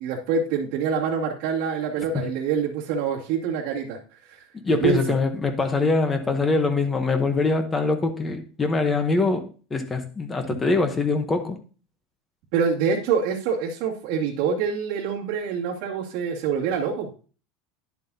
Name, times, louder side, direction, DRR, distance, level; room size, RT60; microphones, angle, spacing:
voice 1, 0.0-4.0 4.2-4.4 4.7-5.0 12.5-17.1, right 6 dB, 50° right, 2.1 m, -25 dB
voice 2, 4.5-11.6, left 3 dB, 15° left, 0.9 m, -23 dB
10.5 x 7.4 x 2.8 m
supercardioid pair, 170°, 0 cm